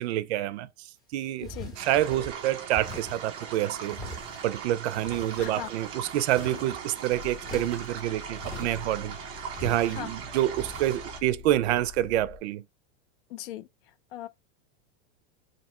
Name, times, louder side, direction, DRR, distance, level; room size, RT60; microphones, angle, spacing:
voice 1, 0.0-0.7 1.1-1.5 1.8-4.0 4.4-9.2 9.6-12.6, right 13 dB, 70° right, 0.5 m, -27 dB
voice 2, 1.4-1.7 5.4-5.7 9.9-10.1 13.3-14.3, left 14 dB, 55° left, 0.4 m, -39 dB
sound 1, 1.4-2.3 2.7-3.3 3.8-4.5 5.0-5.8 6.2-6.9 7.4-7.9 8.4-9.0 9.5-10.0 10.5-11.0, equal, 10° left, 0.7 m, -42 dB
sound 2, 1.7-11.2, right 7 dB, 20° right, 0.3 m, -40 dB
Car / Engine starting / Idling, 1.8-2.6 2.8-3.6 4.3-4.4 4.5-4.6 5.0-5.2 6.2-12.4, left 8 dB, 75° left, 1.2 m, -48 dB
3.0 x 2.7 x 4.1 m
supercardioid pair, 170°, 34 cm